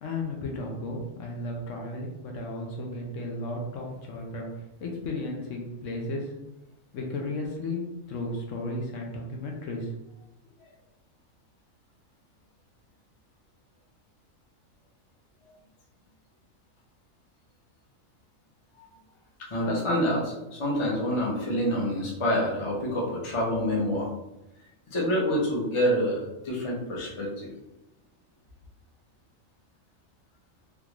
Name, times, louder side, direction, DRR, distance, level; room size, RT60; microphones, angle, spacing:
voice 1, 0.0-4.5 4.8-6.3 6.9-9.9, left 2 dB, 75° left, 1 dB, 1.0 m, -34 dB
voice 2, 19.5-24.1 24.9-27.5, equal, 30° left, -3 dB, 0.7 m, -27 dB
3.6 x 2.4 x 3.0 m, 0.98 s
omnidirectional pair, 1.4 m